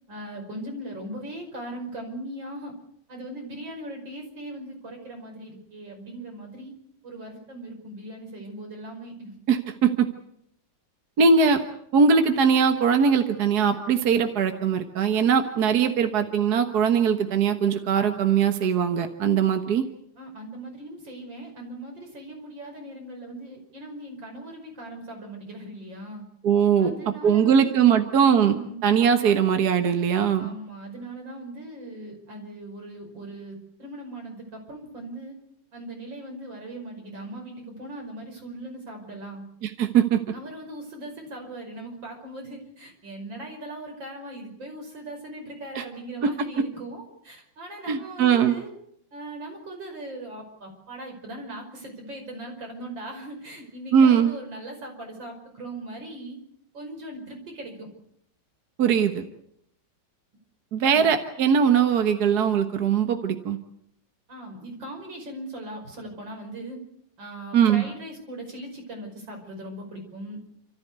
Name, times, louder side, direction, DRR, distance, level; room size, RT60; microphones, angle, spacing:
voice 1, 0.1-2.7 3.1-6.7 7.0-9.4 20.2-26.2 26.8-27.8 28.2-28.8 30.4-35.4 35.7-39.4 40.3-48.7 49.1-56.4 56.7-57.9 60.9-61.1 64.3-66.8 67.2-70.4, right 1 dB, 85° right, 2 dB, 6.2 m, -39 dB
voice 2, 9.5-10.1 11.2-11.6 11.9-19.8 26.4-26.9 27.2-28.6 28.8-30.5 39.6-40.2 45.8-45.9 46.2-46.3 47.9-48.6 53.9-54.3 58.8-59.2 60.7-63.6 67.5-67.8, right 7 dB, 60° right, 7 dB, 1.8 m, -20 dB
29.5 x 14.0 x 8.2 m, 0.74 s
omnidirectional pair, 2.0 m